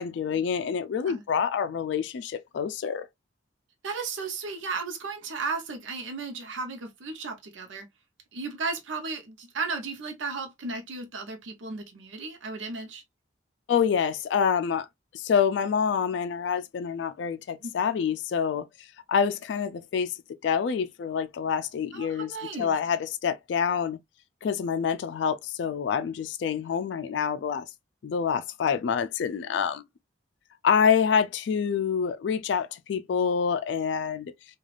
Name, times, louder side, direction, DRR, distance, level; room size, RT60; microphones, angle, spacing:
voice 1, 0.0-3.1 13.7-14.9 15.1-18.7 19.1-20.1 20.4-24.0 24.4-27.7 28.0-29.8 30.6-34.3, left 7 dB, 70° left, 0.3 m, -27 dB
voice 2, 3.8-7.9 8.3-13.0 17.6-17.7 21.9-22.7, right 4 dB, 90° right, 0.7 m, -35 dB
3.2 x 2.3 x 2.3 m
head